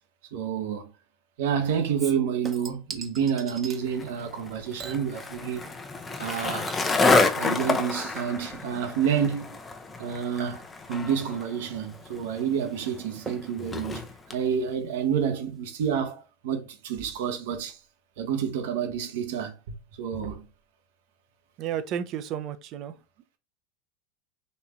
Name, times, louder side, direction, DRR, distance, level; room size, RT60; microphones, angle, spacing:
voice 1, 0.3-0.9 1.4-5.6 6.1-6.7 7.4-9.6 10.0-10.6 10.9-14.0 14.3-17.8 18.2-19.6 19.9-20.5, right 8 dB, 70° right, 1.0 m, -29 dB
Chink clink / Liquid, 2.0-3.8 4.8-5.9 6.2-15.2 15.6-15.7, right 4 dB, 25° right, 0.9 m, -46 dB
Skateboard, 3.9-14.4, left 3 dB, 20° left, 0.7 m, -29 dB
voice 2, 21.6-22.9, right 9 dB, 50° right, 0.6 m, -32 dB
4.2 x 2.7 x 3.5 m
hypercardioid pair, 100°, 0 cm